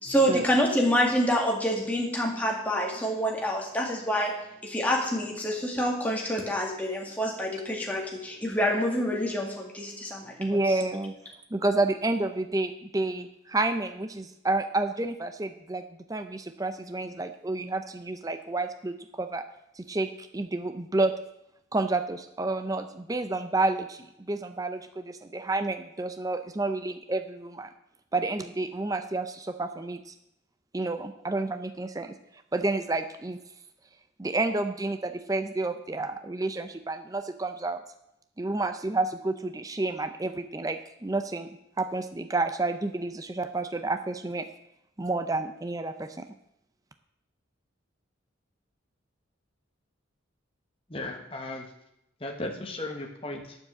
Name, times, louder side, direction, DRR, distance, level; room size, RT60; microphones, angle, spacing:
voice 1, 0.0-4.3 4.6-10.6, equal, 5° left, -1 dB, 2.0 m, -27 dB
voice 2, 10.4-11.1 11.5-15.8 16.1-19.4 19.8-21.1 21.7-27.7 28.1-30.1 30.7-32.1 32.5-33.4 34.2-37.8 38.4-41.5 41.8-44.5 45.0-46.3, right 2 dB, 15° right, 8 dB, 0.5 m, -30 dB
voice 3, 50.9-51.7 52.2-53.6, left 2 dB, 25° left, 2 dB, 1.2 m, -36 dB
9.1 x 7.4 x 7.7 m, 0.81 s
head